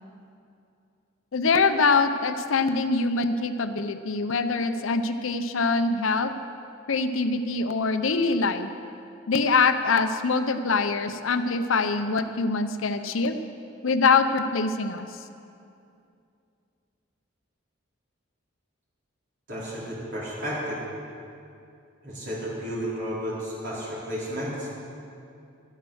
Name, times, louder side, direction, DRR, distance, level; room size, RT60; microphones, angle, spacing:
voice 1, 1.3-6.3 6.9-8.7 9.3-13.4 13.8-15.1, left 4 dB, 80° left, 9 dB, 0.7 m, -24 dB
voice 2, 19.5-20.8 22.0-24.7, equal, 60° right, -8 dB, 4.0 m, -32 dB
12.0 x 11.5 x 6.4 m, 2.6 s
head